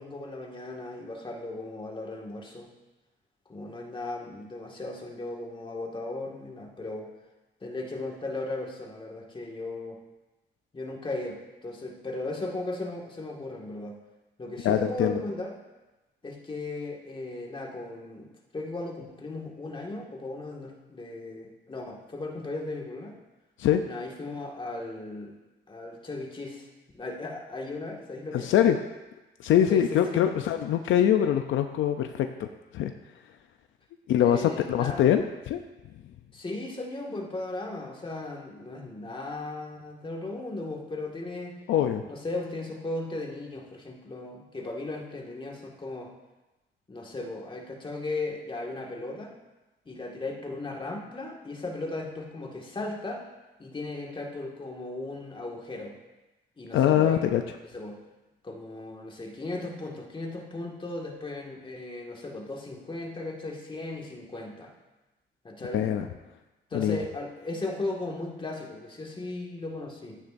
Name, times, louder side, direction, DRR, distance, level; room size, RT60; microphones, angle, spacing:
voice 1, 0.0-2.7 3.5-7.1 7.6-10.0 10.7-14.0 14.4-15.6 16.2-23.2 23.8-25.4 25.7-26.7 26.9-28.5 29.7-30.3 34.2-35.0 36.3-41.6 42.1-46.1 46.9-49.3 49.9-53.3 53.6-56.0 56.6-57.2 57.7-58.0 58.4-64.7 65.4-65.8 66.7-70.2, left 2 dB, 25° left, -1 dB, 1.9 m, -36 dB
voice 2, 14.6-15.2 23.6-23.8 28.3-28.8 29.4-32.5 32.7-32.9 34.1-35.6 41.7-42.0 56.7-57.4 65.7-66.1 66.7-67.0, left 10 dB, 80° left, 6 dB, 0.6 m, -23 dB
12.5 x 9.2 x 2.7 m, 1.1 s
cardioid pair, 90°, 20 cm